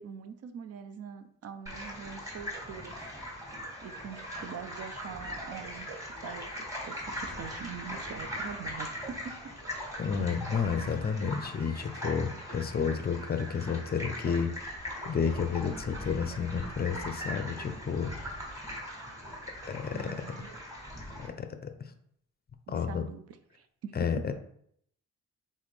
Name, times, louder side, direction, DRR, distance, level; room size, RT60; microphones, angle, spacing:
voice 1, 0.0-3.0 3.8-5.9 6.2-9.5 10.1-10.4 19.9-20.5 22.7-23.9, right 7 dB, 55° right, 9 dB, 0.5 m, -44 dB
sound 1, 1.7-21.3, equal, 10° right, 1.7 m, -40 dB
voice 2, 10.0-18.3 19.7-20.1 21.2-21.7 22.7-23.0 24.0-24.3, left 6 dB, 30° left, 8 dB, 0.5 m, -31 dB
4.1 x 3.7 x 3.2 m, 0.68 s
cardioid pair, 90°, 30 cm